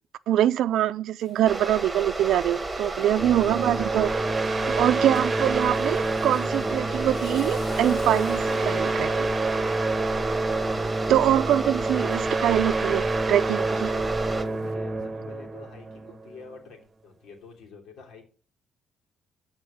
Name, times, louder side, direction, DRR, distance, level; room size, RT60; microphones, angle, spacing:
voice 1, 0.3-4.1 4.8-9.1 11.1-13.9, right 12 dB, 80° right, 0.5 m, -24 dB
Rain, 1.2-14.7, left 4 dB, 55° left, 1.6 m, -50 dB
sound 1, 1.5-14.4, right 2 dB, 15° right, 1.6 m, -32 dB
voice 2, 2.9-3.6 7.9-8.1 13.7-14.1 14.3-16.8 17.0-18.3, left 5 dB, 75° left, 3.1 m, -47 dB
sound 2, 3.2-16.5, right 3 dB, 30° right, 1.1 m, -28 dB
13.0 x 4.4 x 6.2 m
cardioid pair, 90°, 0 cm